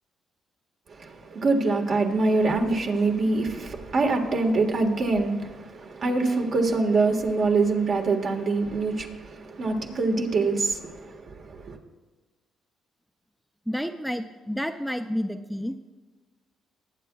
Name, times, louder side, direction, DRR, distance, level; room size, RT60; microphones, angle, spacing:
voice 1, 0.9-11.8, right 3 dB, 55° right, 1.5 m, -25 dB
voice 2, 13.7-15.8, equal, ahead, 0.5 m, -30 dB
20.5 x 8.2 x 2.3 m
cardioid pair, 90°, 0 cm